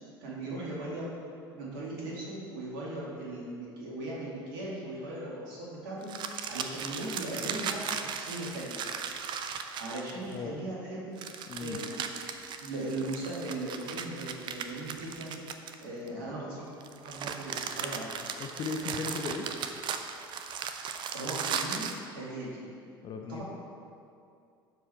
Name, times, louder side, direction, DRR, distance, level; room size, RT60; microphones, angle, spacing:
voice 1, 0.2-1.1 1.5-8.7 9.8-11.2 11.6-12.0 12.6-15.4 15.8-16.7 17.0-18.1 21.1-22.7 23.3-23.4, right 1 dB, 60° right, -5 dB, 2.3 m, -38 dB
sound 1, 6.0-10.3 11.2-16.1 16.8-22.0, right 7 dB, 40° right, 0.6 m, -37 dB
voice 2, 11.5-11.8 18.4-19.5 23.0-23.4, left 4 dB, 35° left, 4 dB, 0.8 m, -36 dB
12.5 x 4.8 x 4.4 m, 2.4 s
figure-of-eight pair, 65°, 12 cm